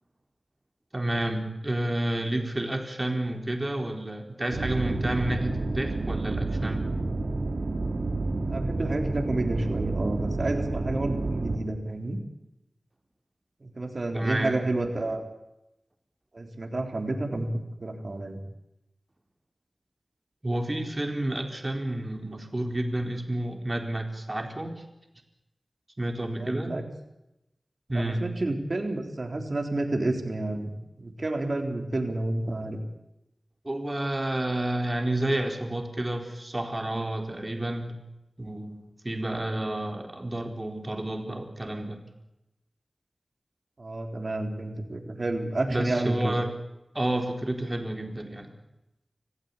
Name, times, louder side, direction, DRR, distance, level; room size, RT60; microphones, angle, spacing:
voice 1, 0.9-6.9 14.1-14.6 20.4-24.8 26.0-26.8 27.9-28.2 33.6-38.0 38.4-42.0 45.7-46.5 46.9-48.5, right 1 dB, 30° right, 4 dB, 4.2 m, -30 dB
sound 1, 4.5-11.6, right 2 dB, 75° right, 3.2 m, -29 dB
voice 2, 8.5-12.2 13.6-15.2 16.3-18.4 26.3-26.8 27.9-30.7 31.0-32.8 43.8-46.4, right 2 dB, 55° right, 5 dB, 3.8 m, -30 dB
25.5 x 15.5 x 8.6 m, 0.89 s
wide cardioid pair, 60°, 0 cm